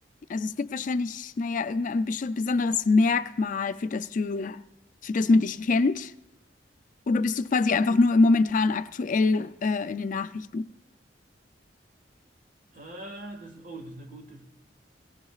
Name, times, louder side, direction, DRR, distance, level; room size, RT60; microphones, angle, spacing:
voice 1, 0.3-4.6 5.0-6.1 7.1-10.7, left 3 dB, 45° left, 0.4 m, -24 dB
voice 2, 12.7-14.4, right 1 dB, 50° right, 1.8 m, -42 dB
18.0 x 17.5 x 2.4 m
head